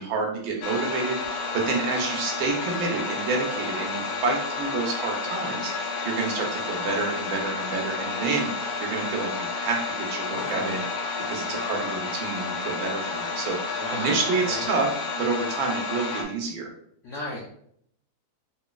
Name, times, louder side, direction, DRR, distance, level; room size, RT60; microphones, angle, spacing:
voice 1, 0.0-10.8 11.3-14.9 15.1-16.7, right 4 dB, 80° right, 1 dB, 1.5 m, -29 dB
sound 1, 0.6-16.2, left 4 dB, 85° left, 1.5 m, -31 dB
voice 2, 10.3-10.8 13.8-14.6 17.0-17.4, left 1 dB, 65° left, -4 dB, 0.7 m, -35 dB
3.9 x 2.8 x 2.3 m, 0.67 s
omnidirectional pair, 2.2 m